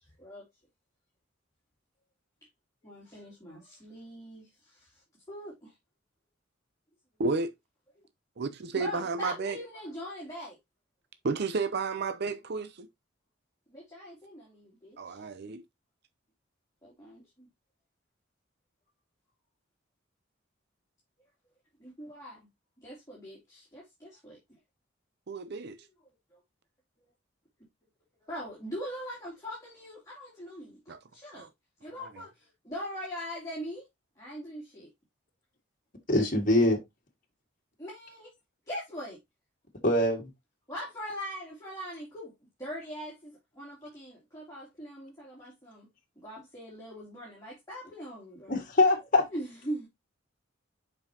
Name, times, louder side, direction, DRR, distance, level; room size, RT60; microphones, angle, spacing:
voice 1, 2.8-4.9 5.3-5.7 8.7-10.6 13.7-15.2 16.8-17.5 21.8-22.5 22.8-24.4 28.2-31.5 31.8-33.8 34.2-34.9 37.8-38.3 38.7-39.2 40.7-42.3 42.6-45.9 46.2-48.6 49.3-49.9, equal, 15° left, 2.9 m, -41 dB
voice 2, 7.2-7.5 8.4-9.6 11.2-12.9 15.0-15.6 25.3-25.8 30.9-31.0 31.3-31.5 32.0-32.1, right 4 dB, 55° right, 0.6 m, -32 dB
voice 3, 36.1-36.8 39.8-40.2 48.5-49.3, left 2 dB, 45° left, 1.8 m, -23 dB
7.2 x 5.4 x 2.8 m
head